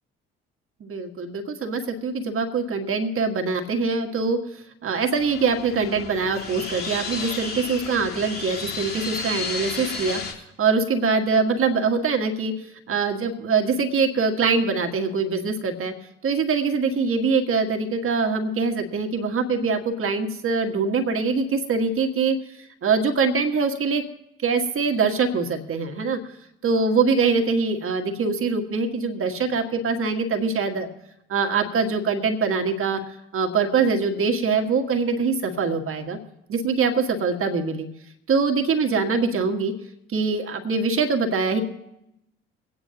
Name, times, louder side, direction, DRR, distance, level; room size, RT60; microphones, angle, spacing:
voice 1, 0.8-12.5 12.9-15.9 16.2-24.0 24.4-26.2 26.6-30.9 31.3-33.0 33.3-36.2 36.5-37.9 38.3-39.7 40.1-41.6, right 4 dB, 45° right, 4 dB, 1.8 m, -23 dB
sound 1, 5.2-10.3, left 4 dB, 30° left, 3.2 m, -33 dB
24.5 x 9.5 x 2.9 m, 0.84 s
hypercardioid pair, 55°, 30 cm